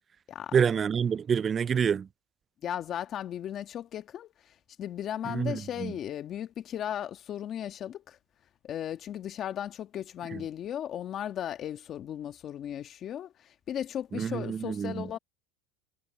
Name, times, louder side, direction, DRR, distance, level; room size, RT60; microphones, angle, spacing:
voice 1, 0.5-2.1 5.3-5.9 14.1-15.0, right 7 dB, 25° right, 0.3 m, -27 dB
voice 2, 2.6-4.3 4.8-8.2 8.6-15.2, left 10 dB, 35° left, 1.5 m, -36 dB
supercardioid pair, 135°, 0 cm